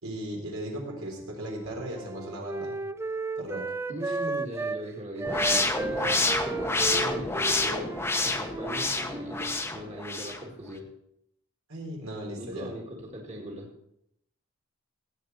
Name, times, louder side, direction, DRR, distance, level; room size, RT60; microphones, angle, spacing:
voice 1, 0.0-2.7 3.4-3.7 4.0-4.2 11.7-12.7, right 1 dB, 80° right, 0 dB, 3.8 m, -37 dB
Wind instrument woodwind instrument, 0.8-4.8 5.2-9.6, right 3 dB, 10° right, 0.3 m, -34 dB
voice 2, 3.9-10.9 12.4-13.7, equal, 35° right, -2 dB, 1.9 m, -40 dB
sound 1, 5.2-10.4, left 2 dB, 10° left, 0.9 m, -28 dB
17.0 x 8.0 x 4.1 m, 0.75 s
head